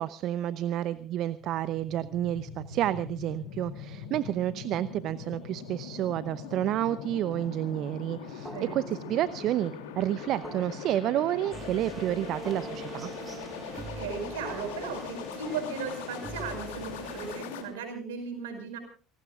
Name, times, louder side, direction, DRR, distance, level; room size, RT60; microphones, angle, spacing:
voice 1, 0.0-13.1, right 12 dB, 55° right, 17 dB, 0.7 m, -30 dB
sound 1, 1.1-17.6, left 7 dB, 75° left, 2.8 m, -41 dB
sound 2, 8.4-16.2, right 2 dB, 10° right, 5.0 m, -49 dB
voice 2, 8.5-9.2 13.7-18.8, right 5 dB, 75° right, 6 dB, 5.5 m, -37 dB
sound 3, 11.5-17.4, right 3 dB, 35° right, 3.0 m, -43 dB
29.0 x 19.0 x 2.5 m, 0.37 s
figure-of-eight pair, 65°, 0 cm